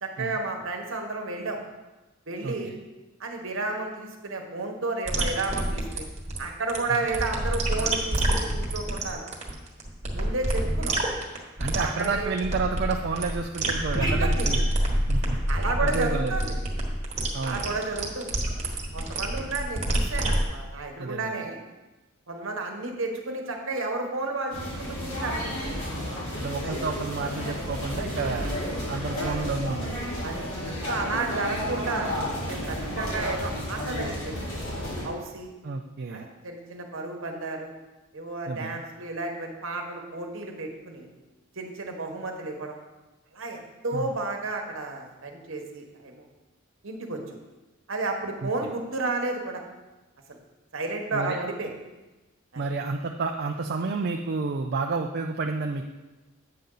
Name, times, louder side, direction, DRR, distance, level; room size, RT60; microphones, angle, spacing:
voice 1, 0.0-1.6 2.3-2.7 3.2-6.1 6.4-9.3 10.1-11.0 11.7-12.3 14.0-14.5 15.5-16.6 17.3-18.3 18.9-21.6 22.3-25.4 26.6-26.7 28.2-28.3 29.2-29.4 30.2-30.4 30.9-32.2 32.5-34.3 35.0-35.5 36.1-37.7 38.1-41.1 41.5-42.8 43.3-46.3 46.8-47.2 47.9-49.6 50.7-51.7 52.5-52.6, right 3 dB, 65° right, 2 dB, 1.2 m, -32 dB
voice 2, 2.4-2.8 6.9-7.0 11.6-14.7 15.1-15.4 15.8-16.6 17.3-17.6 21.0-21.4 26.4-28.5 28.9-30.0 35.6-36.3 38.5-38.8 43.9-44.1 48.4-48.5 51.1-51.4 52.6-55.8, right 4 dB, 50° right, 3 dB, 0.4 m, -30 dB
sound 1, 5.1-20.4, right 1 dB, 35° right, 1.3 m, -28 dB
sound 2, 13.9-18.1, equal, 20° left, 1.0 m, -27 dB
sound 3, 24.5-35.1, equal, 90° left, 2.9 m, -32 dB
8.5 x 6.8 x 3.9 m, 1.1 s
head